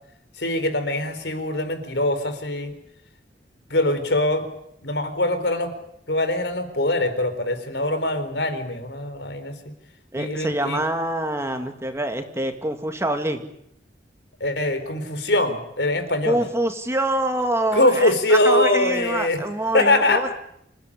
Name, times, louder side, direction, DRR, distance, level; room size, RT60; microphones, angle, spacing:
voice 1, 0.4-2.7 3.7-4.5 4.8-5.7 6.1-9.5 10.1-10.8 14.4-16.4 17.7-19.4 19.7-20.2, left 2 dB, 70° left, 9 dB, 4.0 m, -22 dB
voice 2, 10.1-13.5 16.3-20.3, right 1 dB, 15° right, 6 dB, 2.2 m, -25 dB
27.5 x 15.5 x 10.0 m, 0.74 s
head